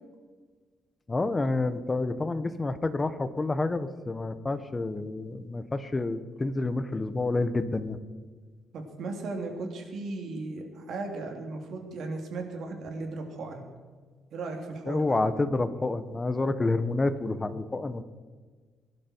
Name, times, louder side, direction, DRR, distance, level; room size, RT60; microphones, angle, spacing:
voice 1, 1.1-8.0 14.9-18.0, left 2 dB, 20° left, 12 dB, 1.0 m, -29 dB
voice 2, 8.7-13.6 14.3-15.2, right 3 dB, 65° right, 3 dB, 3.0 m, -36 dB
22.5 x 11.5 x 4.5 m, 1.5 s
cardioid pair, 115°, 0 cm